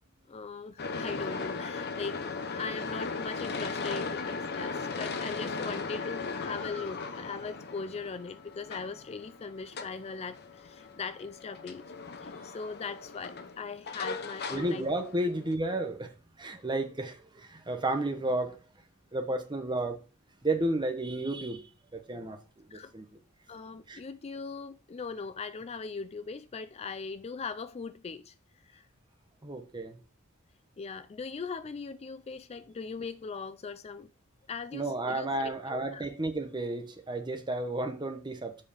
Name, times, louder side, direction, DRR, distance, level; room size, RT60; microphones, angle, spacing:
voice 1, 0.3-2.2 2.5-11.8 12.2-14.9 22.7-22.9 23.5-28.3 28.6-28.8 30.8-34.1 34.5-36.0, left 4 dB, 30° left, 0.3 m, -40 dB
sound 1, 0.8-15.5, left 4 dB, 50° left, 0.9 m, -38 dB
voice 2, 14.5-18.6 19.1-20.0 20.4-21.6 21.9-22.4 22.7-23.1 23.9-24.0 29.4-30.0 34.7-38.7, right 2 dB, 20° right, 1.1 m, -32 dB
7.5 x 4.9 x 4.9 m
head